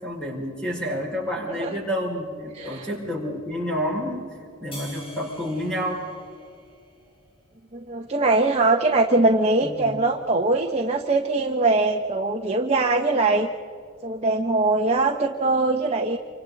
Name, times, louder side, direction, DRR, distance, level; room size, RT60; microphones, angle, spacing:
voice 1, 0.0-4.3 4.6-6.1 9.6-10.0, equal, 5° left, -3 dB, 5.8 m, -29 dB
voice 2, 2.5-2.9 7.7-13.5 14.0-16.2, right 2 dB, 30° right, 0 dB, 1.1 m, -22 dB
sound 1, 4.7-7.3, left 1 dB, 25° left, 4.0 m, -45 dB
28.5 x 25.5 x 4.1 m, 2.3 s
head